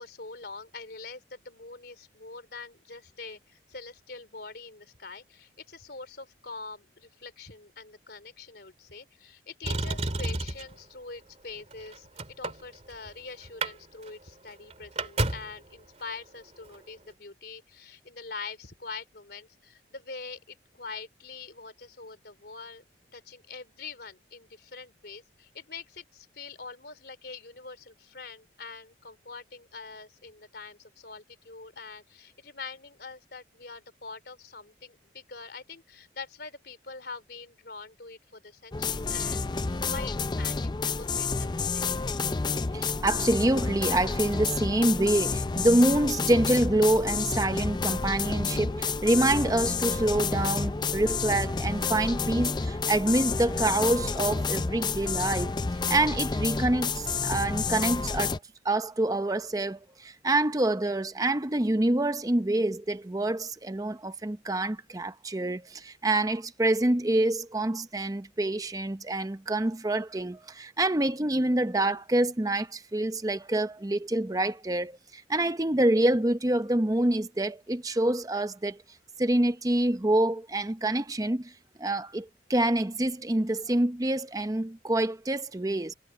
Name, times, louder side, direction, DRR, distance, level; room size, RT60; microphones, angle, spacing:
voice 1, 0.0-12.1 12.4-22.8 23.1-41.8, left 4 dB, 60° left, 3.8 m, -44 dB
Motor vehicle (road), 9.6-10.8 11.6-13.1 13.4-13.7 14.0-14.1 14.5-15.6 16.6-16.8, right 2 dB, 35° right, 2.8 m, -31 dB
sound 1, 38.7-58.4, left 4 dB, 25° left, 0.4 m, -30 dB
voice 2, 42.7-55.6 55.9-58.4 58.6-78.8 79.2-81.5 81.8-85.9, right 1 dB, 20° right, 0.7 m, -26 dB
head